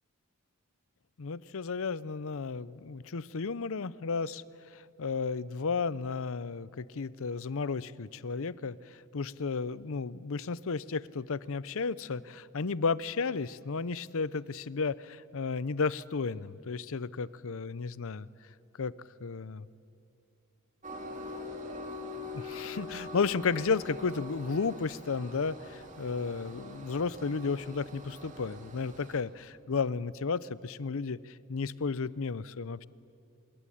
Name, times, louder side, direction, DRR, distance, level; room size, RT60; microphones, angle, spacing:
voice 1, 1.2-4.4 4.7-18.3 18.8-18.9 19.2-19.7 22.2-32.9, left 4 dB, 65° left, 19 dB, 0.6 m, -33 dB
Train, 20.8-29.2, left 2 dB, 35° right, 2.6 m, -44 dB
26.0 x 21.5 x 10.0 m, 2.5 s
head